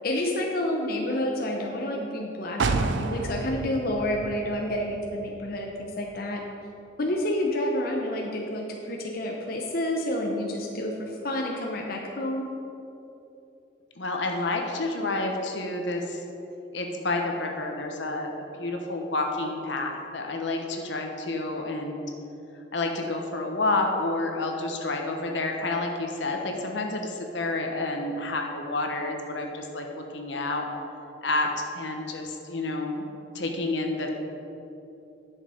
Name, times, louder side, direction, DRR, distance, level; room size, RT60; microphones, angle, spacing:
voice 1, 0.0-6.4 7.0-12.5, left 1 dB, 50° left, 0 dB, 0.9 m, -29 dB
sound 1, 2.6-6.3 6.7-6.8, right 4 dB, 80° right, 0.5 m, -31 dB
voice 2, 14.0-16.2 16.7-22.1 22.7-30.7 31.2-33.0 33.3-34.1, left 2 dB, 75° left, 2 dB, 1.1 m, -29 dB
10.5 x 6.6 x 5.0 m, 2.9 s
head